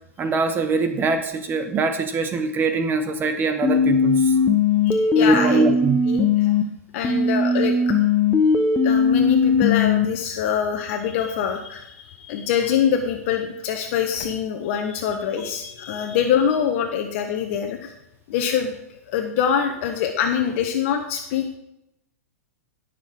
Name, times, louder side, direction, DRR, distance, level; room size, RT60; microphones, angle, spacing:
voice 1, 0.2-4.3 5.2-6.0, right 4 dB, 25° right, 8 dB, 1.0 m, -23 dB
sound 1, 3.6-6.6 7.0-10.1, left 4 dB, 15° left, 1.2 m, -19 dB
voice 2, 4.8-5.6 6.1-6.5 6.9-7.9 8.8-17.9 18.3-18.7 19.1-21.6, left 8 dB, 55° left, 4 dB, 1.4 m, -24 dB
17.5 x 6.7 x 3.8 m, 0.83 s
hypercardioid pair, 110°, 8 cm